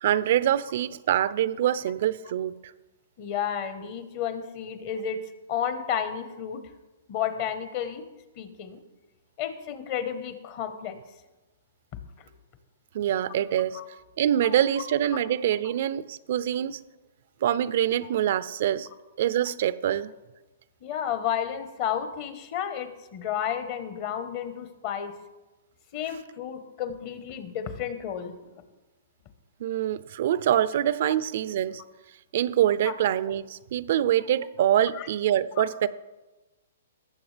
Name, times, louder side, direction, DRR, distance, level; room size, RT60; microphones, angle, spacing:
voice 1, 0.0-2.7 12.9-13.8 14.2-16.8 17.4-18.9 19.2-20.1 29.6-31.8 32.3-35.9, right 11 dB, 55° right, 0.4 m, -25 dB
voice 2, 3.2-5.2 5.5-6.6 7.1-8.0 8.4-8.8 9.4-11.0 13.7-13.9 14.4-14.6 15.6-15.7 18.0-18.1 20.8-25.1 25.9-28.3 32.8-32.9 34.9-35.1 35.6-35.7, left 8 dB, 40° left, 1.1 m, -32 dB
18.5 x 7.1 x 3.3 m
hypercardioid pair, 145°, 0 cm